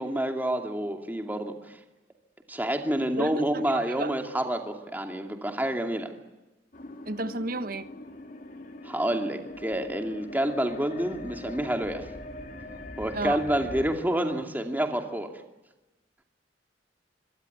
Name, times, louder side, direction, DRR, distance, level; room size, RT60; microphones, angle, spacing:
voice 1, 0.0-1.8 2.5-6.1 8.8-12.1 13.0-15.3, right 1 dB, 10° right, 2.5 m, -28 dB
voice 2, 3.2-4.1 7.0-7.9 13.1-13.5, right 2 dB, 50° right, 1.2 m, -33 dB
sound 1, 6.7-14.0, left 2 dB, 50° left, 2.2 m, -42 dB
25.0 x 23.5 x 9.7 m
head